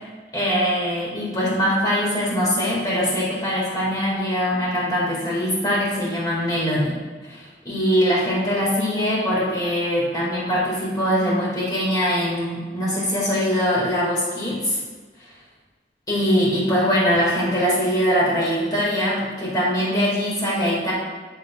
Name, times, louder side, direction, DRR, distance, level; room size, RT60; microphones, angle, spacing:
voice 1, 0.3-6.9 7.3-14.8 16.1-20.9, equal, 20° left, -6 dB, 2.1 m, -22 dB
14.0 x 5.7 x 2.4 m, 1.4 s
head